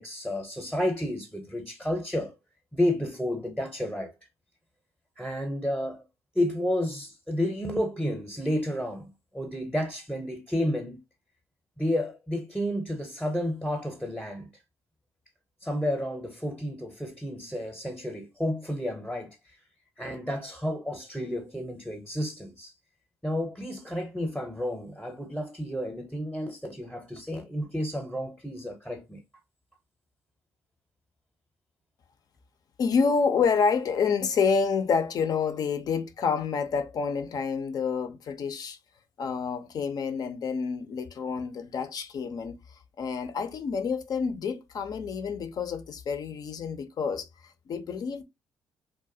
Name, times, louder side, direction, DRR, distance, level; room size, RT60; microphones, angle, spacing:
voice 1, 0.0-2.3 2.7-4.1 5.2-6.0 6.3-11.0 11.8-14.5 15.6-19.4 20.0-22.7 23.2-29.2, left 1 dB, 5° left, 0.7 m, -31 dB
voice 2, 32.8-38.8 39.2-42.5 43.0-48.2, left 5 dB, 55° left, 0.5 m, -28 dB
2.4 x 2.1 x 2.6 m
cardioid pair, 75°, 8 cm